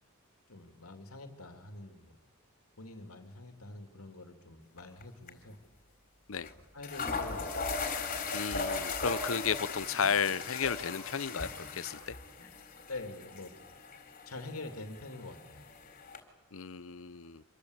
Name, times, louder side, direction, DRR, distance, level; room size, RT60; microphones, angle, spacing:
voice 1, 0.5-2.1 2.8-5.6 6.7-7.5 12.9-13.5 14.3-15.7, left 2 dB, 85° left, 5 dB, 3.0 m, -45 dB
sound 1, 4.8-5.0 5.3-5.4 6.4-6.5 6.8-16.2, left 4 dB, 40° left, 4.0 m, -38 dB
voice 2, 8.3-12.1 16.5-17.4, left 6 dB, 65° left, 17 dB, 0.8 m, -33 dB
26.5 x 23.5 x 8.2 m, 1.2 s
head